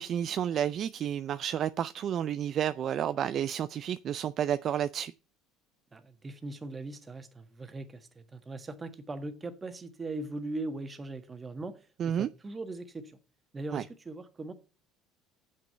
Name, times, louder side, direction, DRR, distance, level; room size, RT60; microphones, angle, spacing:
voice 1, 0.0-5.1 12.0-12.3 13.7-13.8, right 9 dB, 45° right, 0.4 m, -31 dB
voice 2, 5.9-13.2 13.5-14.5, right 2 dB, 20° right, 1.5 m, -40 dB
7.6 x 6.2 x 6.8 m
cardioid pair, 120°, 0 cm